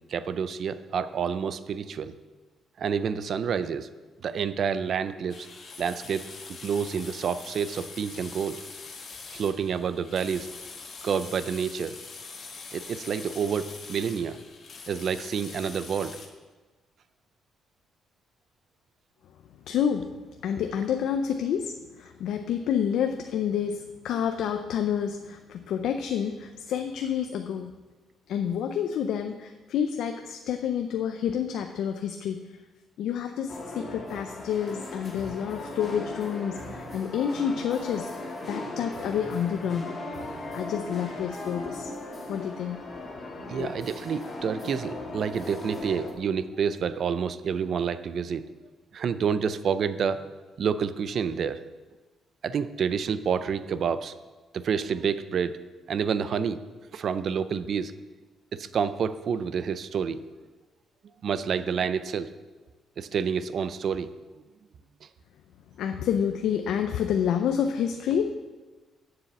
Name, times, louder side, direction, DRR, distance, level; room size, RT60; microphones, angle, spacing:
voice 1, 0.1-2.1 2.8-3.9 4.2-5.5 5.8-8.6 9.3-10.5 11.0-12.0 12.7-14.4 14.9-16.2 43.5-48.4 48.9-50.3 50.6-51.6 52.4-54.1 54.5-55.6 55.9-56.6 56.9-57.9 58.5-60.2 61.2-62.3 63.0-64.1, right 7 dB, 50° right, 13 dB, 0.5 m, -28 dB
sound 1, 5.3-16.3, left 4 dB, 40° left, 1.5 m, -43 dB
voice 2, 19.7-27.7 28.3-32.6 33.0-39.9 40.5-41.9 42.3-42.8 43.5-43.7 65.8-68.3, left 8 dB, 75° left, 6 dB, 0.5 m, -29 dB
sound 2, 33.5-46.1, left 2 dB, 25° left, 1.9 m, -38 dB
7.2 x 6.9 x 8.0 m, 1.3 s
cardioid pair, 140°, 0 cm